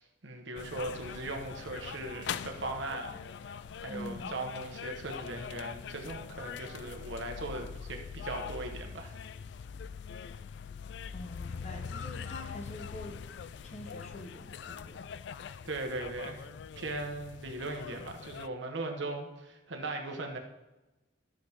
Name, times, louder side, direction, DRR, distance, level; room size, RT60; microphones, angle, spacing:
voice 1, 0.0-3.2 3.5-9.2 15.6-16.5 16.8-20.4, right 2 dB, 70° right, 3 dB, 1.2 m, -39 dB
sound 1, 0.6-18.5, left 7 dB, 60° left, 0.3 m, -43 dB
voice 2, 3.9-4.3 11.1-13.2 13.6-15.0, left 1 dB, 35° left, 4 dB, 1.0 m, -45 dB
13.0 x 6.4 x 3.6 m, 1.0 s
head